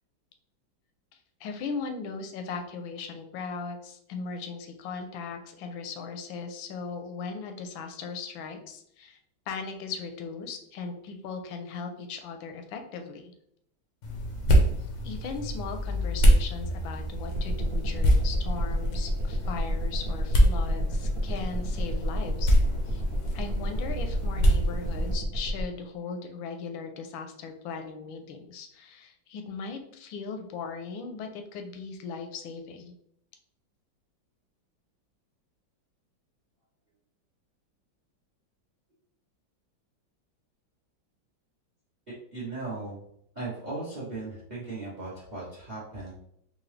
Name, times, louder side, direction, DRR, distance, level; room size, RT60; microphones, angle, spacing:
voice 1, 1.4-9.2 9.5-13.3 15.0-22.5 22.9-23.0 23.3-32.9, left 5 dB, 85° left, 5 dB, 1.4 m, -38 dB
sound 1, 14.0-25.1, equal, 65° left, 0.7 m, -26 dB
sound 2, 17.3-25.6, equal, 80° right, 0.5 m, -30 dB
voice 2, 42.1-43.0 43.3-46.1, right 3 dB, 35° right, -5 dB, 0.8 m, -37 dB
3.9 x 2.6 x 3.2 m, 0.71 s
omnidirectional pair, 2.1 m